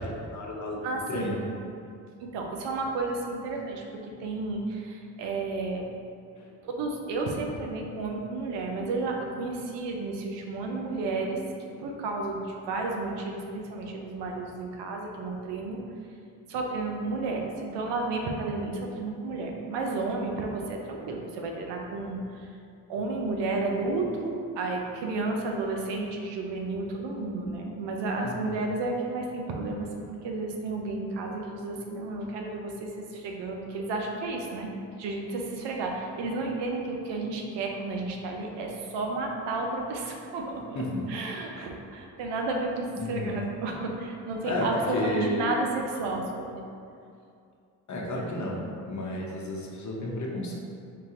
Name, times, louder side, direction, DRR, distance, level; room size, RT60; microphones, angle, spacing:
voice 1, 0.0-0.8 1.1-1.4 6.4-6.5 28.2-28.6 40.7-41.0 42.9-43.4 44.5-44.7 44.9-45.4 47.9-50.6, left 1 dB, 40° left, -2 dB, 0.9 m, -32 dB
voice 2, 0.8-1.3 2.2-5.9 6.6-15.8 16.5-22.5 22.9-34.7 35.0-46.5, right 3 dB, 70° right, 1 dB, 0.7 m, -32 dB
3.8 x 2.7 x 3.7 m, 2.4 s
supercardioid pair, 65°, 45 cm